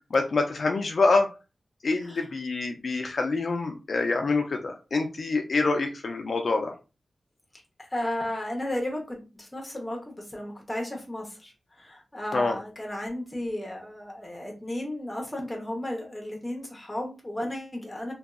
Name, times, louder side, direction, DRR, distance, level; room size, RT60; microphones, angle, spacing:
voice 1, 0.1-1.3 1.8-6.7 12.3-12.6, left 3 dB, 60° left, 3 dB, 0.3 m, -26 dB
voice 2, 7.8-18.1, left 1 dB, 15° left, 0 dB, 0.8 m, -34 dB
2.6 x 2.3 x 2.3 m, 0.31 s
wide cardioid pair, 115°, 0 cm